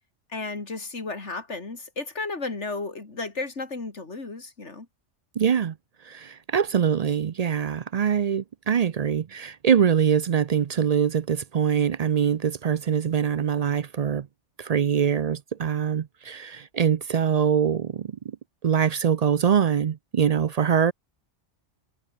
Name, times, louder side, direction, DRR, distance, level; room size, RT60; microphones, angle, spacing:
voice 1, 0.3-4.9, left 3 dB, 70° left, 3.3 m, -33 dB
voice 2, 5.4-5.7 6.0-14.3 14.6-18.4 18.6-20.9, right 7 dB, 55° right, 0.4 m, -23 dB
omnidirectional pair, 1.2 m